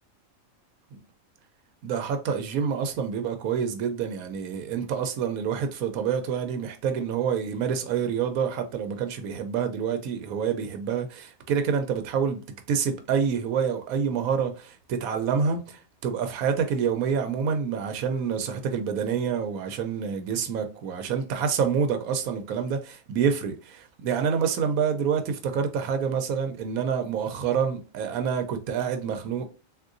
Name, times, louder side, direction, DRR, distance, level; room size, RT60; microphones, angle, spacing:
voice 1, 1.8-12.4 12.7-29.4, right 7 dB, 85° right, 1.0 m, -27 dB
3.6 x 2.6 x 2.5 m
omnidirectional pair, 1.5 m